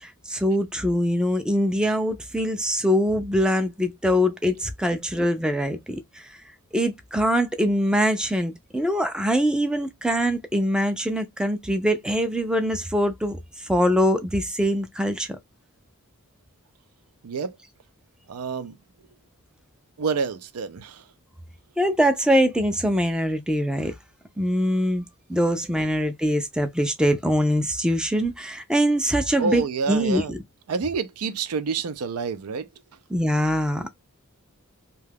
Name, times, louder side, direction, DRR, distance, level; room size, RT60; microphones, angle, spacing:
voice 1, 0.0-6.2 6.7-15.3 21.8-23.9 24.4-25.0 25.3-30.4 33.1-33.9, equal, 5° right, 0.3 m, -23 dB
voice 2, 17.2-17.6 18.3-18.7 20.0-21.0 29.4-30.3 30.7-32.7, right 5 dB, 85° right, 0.5 m, -28 dB
2.8 x 2.3 x 3.3 m
head